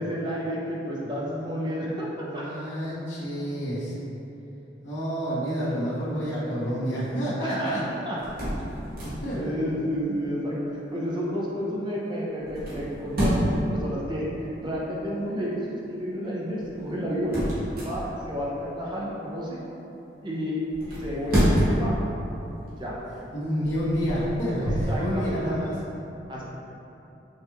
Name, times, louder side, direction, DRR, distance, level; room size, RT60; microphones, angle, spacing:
voice 1, 0.0-2.4 7.4-8.2 9.3-17.4 17.8-19.6 20.2-20.6 20.9-21.9 22.8-22.9 24.9-25.4 26.3-26.4, equal, 25° right, -5 dB, 0.6 m, -31 dB
voice 2, 1.0-4.0 4.8-7.8 9.0-9.5 23.3-25.8, equal, 80° left, -10 dB, 1.4 m, -29 dB
sound 1, 8.1-9.5 12.4-13.7 16.6-18.4 20.7-21.9 22.5-22.7 23.4-25.0, equal, 55° right, 1.2 m, -27 dB
5.4 x 2.4 x 3.0 m, 2.9 s
head